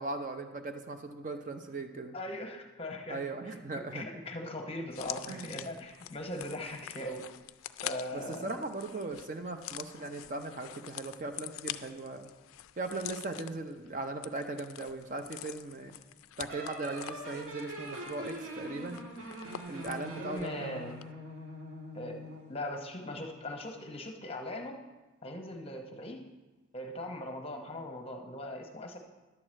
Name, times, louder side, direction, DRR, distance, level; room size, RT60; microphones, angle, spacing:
voice 1, 0.0-2.2 3.1-4.0 5.3-5.6 8.1-12.3 12.8-16.0 16.4-19.0 19.7-20.8, right 2 dB, 35° right, 6 dB, 0.5 m, -38 dB
voice 2, 2.1-7.3 7.8-8.6 20.2-21.0 21.9-24.8 25.2-26.2 26.7-29.0, left 1 dB, 25° left, 4 dB, 0.8 m, -40 dB
sound 1, 4.9-20.6 20.9-21.0, left 13 dB, 75° left, 0.3 m, -46 dB
sound 2, 16.5-22.5, equal, 80° right, 1.5 m, -43 dB
11.0 x 4.7 x 7.5 m, 1.2 s
head